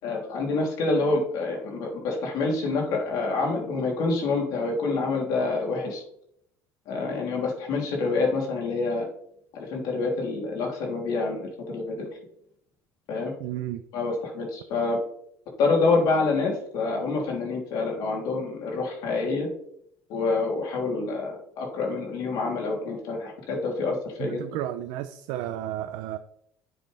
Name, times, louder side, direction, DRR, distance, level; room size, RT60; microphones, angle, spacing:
voice 1, 0.0-6.0 6.9-9.1 9.5-12.1 13.1-13.3 13.9-15.0 15.6-19.5 20.1-24.4, left 3 dB, 65° left, 0 dB, 3.4 m, -27 dB
voice 2, 13.4-13.8 24.2-26.2, right 12 dB, 80° right, 8 dB, 0.6 m, -32 dB
9.4 x 7.9 x 3.5 m, 0.72 s
cardioid pair, 120°, 7 cm